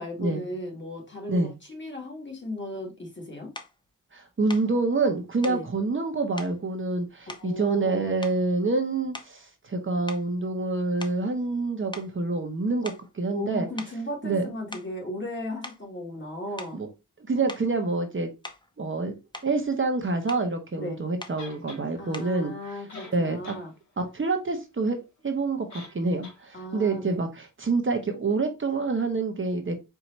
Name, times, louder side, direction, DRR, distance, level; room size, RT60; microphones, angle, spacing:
voice 1, 0.0-3.5 5.4-5.7 7.3-8.0 13.3-16.8 20.8-21.0 22.0-23.7 26.5-27.2, left 1 dB, 35° left, 2.1 m, -36 dB
sound 1, 3.5-3.8 4.5-4.7 5.4-5.7 6.4-6.6 7.3-7.9 8.2-8.6 9.1-9.5 10.1-11.6 11.9-12.1 12.8-13.1 13.8-14.0 14.5-15.0 15.6-15.8 16.6-16.8 17.5-17.7 18.4-18.7 19.1-19.6 20.3-20.5 21.2-21.4 22.1-22.4, left 2 dB, 15° left, 0.7 m, -42 dB
voice 2, 4.1-13.7 14.2-14.5 16.7-16.9 17.3-18.3 18.8-19.1 19.4-22.5 23.1-23.4 24.0-25.0 25.2-29.8, right 3 dB, 40° right, 1.0 m, -27 dB
sound 2, 21.4-21.8 22.6-22.7 22.9-23.6 24.0-24.1 25.7-26.0 26.2-26.4, left 3 dB, 60° left, 2.1 m, -44 dB
4.7 x 2.7 x 4.1 m
wide cardioid pair, 85°, 33 cm